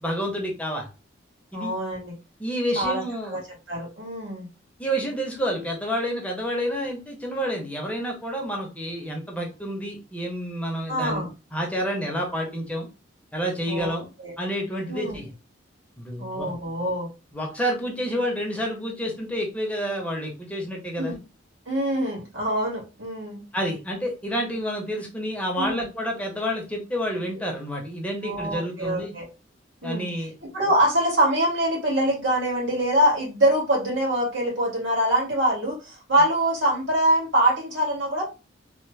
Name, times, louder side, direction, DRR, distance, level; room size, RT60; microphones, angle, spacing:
voice 1, 0.0-0.9 1.5-1.7 2.4-3.4 4.8-12.9 13.3-14.1 14.4-15.3 16.0-16.5 17.3-21.2 23.5-29.1 29.8-30.3, equal, 5° left, 0 dB, 0.7 m, -29 dB
voice 2, 1.5-2.1 2.8-3.4 3.7-4.5 10.9-11.3 13.7-13.9 14.2-14.3 14.9-15.2 16.2-17.1 21.0-21.1 21.7-23.4 25.6-25.9 28.2-29.3 29.8-30.1 30.4-38.2, right 1 dB, 90° right, -3 dB, 1.8 m, -24 dB
3.2 x 2.1 x 3.1 m, 0.30 s
head